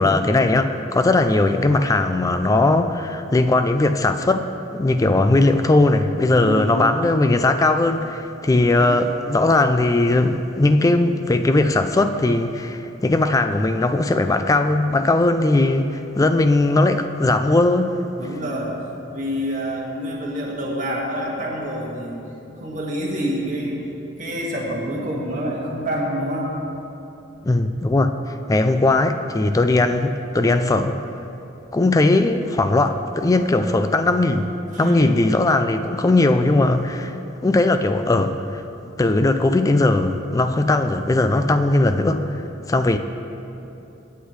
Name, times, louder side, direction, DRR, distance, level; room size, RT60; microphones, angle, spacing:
voice 1, 0.0-18.0 27.4-28.1 28.5-31.0 31.7-34.5 34.8-37.1 37.4-38.6 39.0-42.4 42.7-43.0, left 2 dB, 20° left, 8 dB, 0.3 m, -19 dB
voice 2, 6.3-6.8 8.8-9.0 18.2-18.8 19.1-22.2 22.6-23.8 24.2-26.5 34.7-35.2, equal, 40° right, -3 dB, 1.7 m, -27 dB
16.5 x 8.2 x 3.2 m, 2.9 s
head